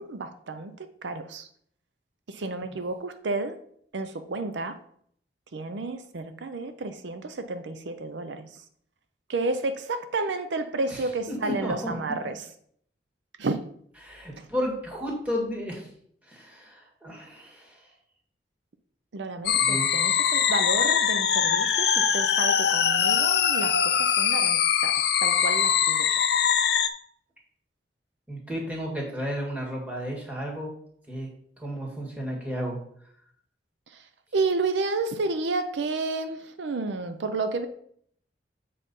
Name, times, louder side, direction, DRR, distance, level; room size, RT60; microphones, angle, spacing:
voice 1, 0.0-1.5 2.3-3.6 3.9-4.8 5.5-8.6 9.3-12.4 13.4-13.6 19.1-26.2 33.9-34.1 34.3-37.7, right 3 dB, 80° right, 9 dB, 0.6 m, -31 dB
voice 2, 11.4-11.9 14.0-15.9 16.3-17.8 19.6-19.9 28.3-30.7 31.1-31.3 31.6-32.8, equal, 10° right, -2 dB, 1.7 m, -33 dB
sound 1, 19.5-26.9, left 8 dB, 60° left, 0.5 m, -22 dB
7.3 x 4.2 x 5.3 m, 0.65 s
head